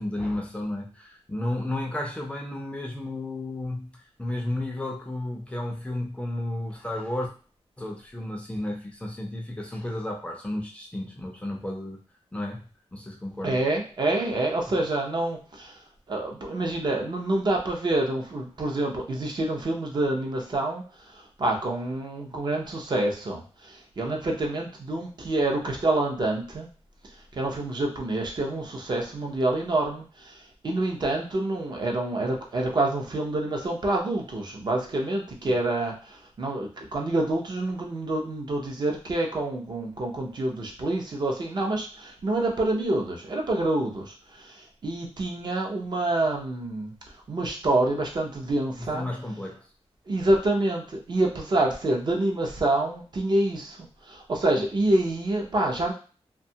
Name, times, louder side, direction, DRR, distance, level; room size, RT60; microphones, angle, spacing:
voice 1, 0.0-7.3 7.8-12.0 12.3-13.6 14.6-14.8 35.5-35.6 48.8-49.7 54.6-54.7, left 1 dB, 10° left, 0 dB, 0.4 m, -33 dB
voice 2, 13.4-15.7 16.1-20.8 21.4-26.7 27.4-30.4 30.6-46.9 47.3-49.1 50.1-53.8 54.1-55.9, right 2 dB, 45° right, 0 dB, 0.6 m, -27 dB
2.6 x 2.2 x 2.7 m, 0.38 s
wide cardioid pair, 150°, 11 cm